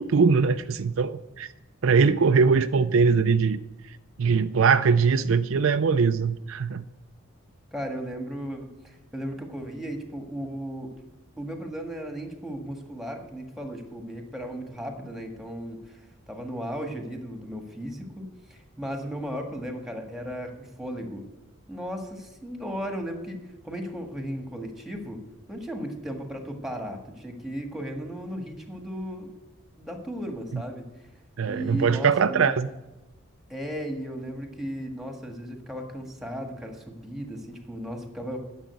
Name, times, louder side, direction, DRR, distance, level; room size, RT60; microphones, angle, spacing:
voice 1, 0.0-1.5 1.8-3.6 4.2-6.8 30.5-30.6 31.4-32.7, right 5 dB, 70° right, 11 dB, 0.4 m, -21 dB
voice 2, 7.7-10.9 11.4-16.0 16.3-21.2 21.7-25.2 25.5-29.3 29.8-30.9 31.5-32.5 33.5-38.4, equal, ahead, 3 dB, 1.6 m, -35 dB
10.0 x 7.2 x 9.3 m, 1.0 s
head